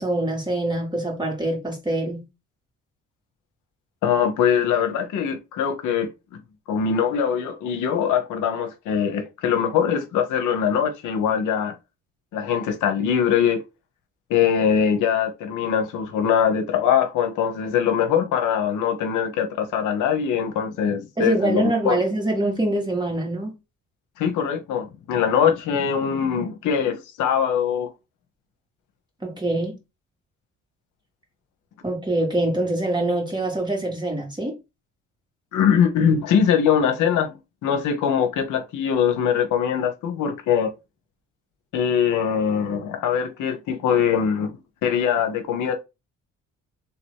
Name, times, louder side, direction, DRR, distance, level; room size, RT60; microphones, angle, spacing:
voice 1, 0.0-2.2 21.2-23.5 29.2-29.8 31.8-34.6, right 2 dB, 15° right, 2.2 m, -24 dB
voice 2, 4.0-6.4 6.7-11.7 12.3-13.6 14.3-22.0 24.2-27.9 35.5-40.7 41.7-44.6 44.8-45.7, left 8 dB, 85° left, 1.0 m, -22 dB
3.5 x 2.9 x 4.6 m
cardioid pair, 90°, 30 cm